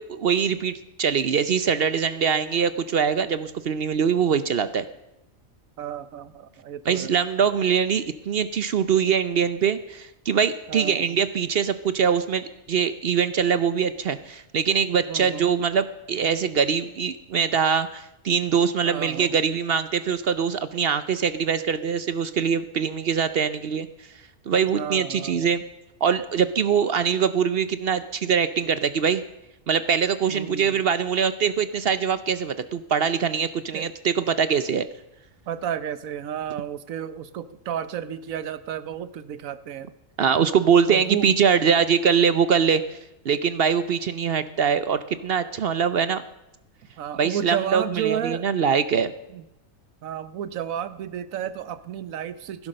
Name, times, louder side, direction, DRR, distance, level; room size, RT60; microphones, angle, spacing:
voice 1, 0.0-4.9 6.9-23.9 24.5-25.6 26.0-29.2 29.7-34.9 40.2-43.0 43.2-46.2 47.2-49.1, right 7 dB, 55° right, 13 dB, 0.8 m, -23 dB
voice 2, 5.8-7.1 10.7-11.2 15.1-15.5 18.8-19.4 24.8-25.5 30.3-30.8 33.7-33.9 35.5-39.9 40.9-41.3 47.0-48.5 49.3-49.4 50.0-52.7, right 9 dB, 85° right, 15 dB, 1.2 m, -32 dB
16.0 x 11.0 x 6.4 m, 0.90 s
omnidirectional pair, 1.4 m